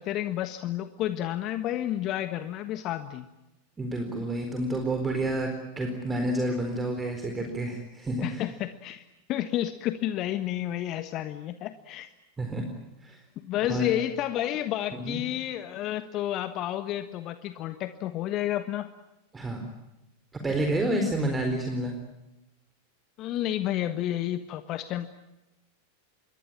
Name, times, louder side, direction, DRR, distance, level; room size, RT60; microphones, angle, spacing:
voice 1, 0.0-3.3 8.2-9.0 9.3-12.1 13.4-18.9 23.2-25.1, left 12 dB, 40° left, 10 dB, 1.4 m, -30 dB
voice 2, 3.8-5.5 5.8-8.4 12.4-12.7 13.0-13.2 13.7-13.9 14.9-15.2 19.3-19.7 20.4-21.9, right 1 dB, 15° right, 4 dB, 4.2 m, -29 dB
27.0 x 22.5 x 8.8 m, 0.92 s
figure-of-eight pair, 90°, 0 cm